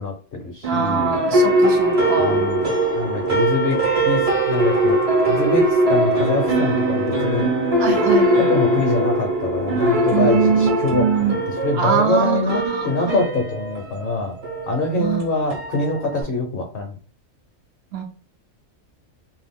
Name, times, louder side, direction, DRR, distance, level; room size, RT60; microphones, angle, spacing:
voice 1, 0.0-1.2 2.2-5.0 5.3-7.5 8.4-11.1 11.6-14.3 14.7-16.9, left 3 dB, 55° left, 3 dB, 0.8 m, -24 dB
sound 1, 0.6-16.2, right 1 dB, 35° right, 0.7 m, -21 dB
voice 2, 0.7-2.5 7.8-8.3 10.1-11.3 11.7-13.2 15.0-15.2 17.9-18.0, right 7 dB, 60° right, 4 dB, 0.8 m, -23 dB
2.6 x 2.4 x 3.5 m, 0.41 s
omnidirectional pair, 1.4 m